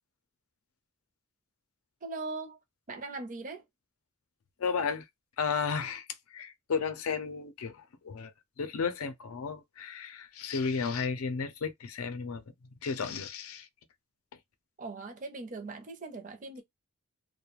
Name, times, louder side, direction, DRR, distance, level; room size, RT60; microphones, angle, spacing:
voice 1, 2.0-2.6 2.9-3.6 14.8-16.6, right 3 dB, 40° right, 0.5 m, -40 dB
voice 2, 4.6-5.0 5.4-8.3 8.6-12.4 12.8-13.7, left 5 dB, 80° left, 0.5 m, -33 dB
2.3 x 2.1 x 2.9 m
head